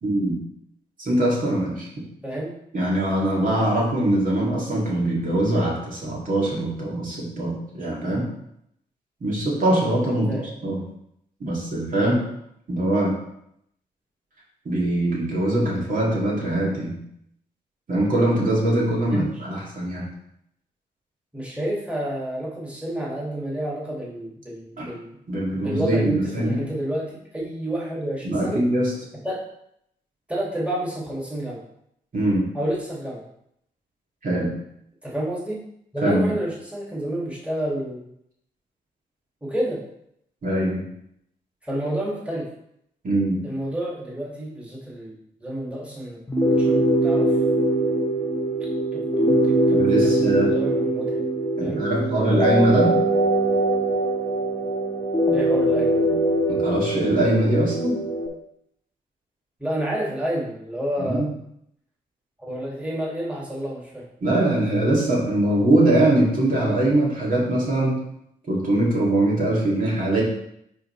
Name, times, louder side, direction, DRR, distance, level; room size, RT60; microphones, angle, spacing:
voice 1, 0.0-0.4 1.0-1.9 2.7-8.3 9.2-10.8 11.4-12.2 12.7-13.1 14.6-17.0 17.9-20.0 24.8-24.9 25.3-26.6 28.2-28.9 32.1-32.5 34.2-34.5 36.0-36.3 40.4-40.8 43.0-43.4 49.7-50.5 51.6-52.9 56.6-58.0 61.0-61.3 64.2-68.0 68.5-70.2, right 1 dB, 50° right, -5 dB, 2.8 m, -22 dB
voice 2, 10.1-10.5 19.1-19.4 21.3-25.2 25.5-28.6 29.2-29.4 30.3-31.6 32.5-33.2 35.0-35.6 35.9-38.0 39.4-39.8 41.6-42.5 43.4-45.1 45.4-46.2 46.5-47.4 48.9-51.2 51.6-51.8 55.3-56.1 59.6-61.3 62.4-64.1, right 1 dB, 5° right, -5 dB, 2.6 m, -29 dB
sound 1, 46.3-58.3, right 1 dB, 15° left, 1.5 m, -22 dB
9.8 x 3.8 x 3.4 m, 0.74 s
supercardioid pair, 55°, 18 cm